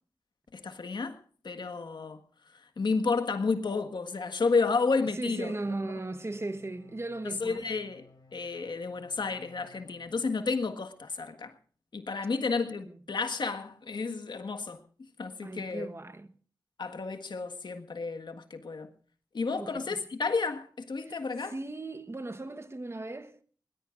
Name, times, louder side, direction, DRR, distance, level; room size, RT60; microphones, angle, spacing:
voice 1, 0.5-2.2 2.8-5.5 7.4-8.0 8.3-11.5 11.9-14.8 15.2-15.9 16.8-18.9 19.3-21.5, left 4 dB, 80° left, 1.6 m, -31 dB
voice 2, 5.1-7.7 12.8-13.0 15.4-16.4 19.6-20.1 21.0-23.4, right 2 dB, 35° right, 1.2 m, -38 dB
sound 1, 5.6-10.7, left 3 dB, 60° left, 5.1 m, -59 dB
21.0 x 19.5 x 2.6 m
wide cardioid pair, 70°, 8 cm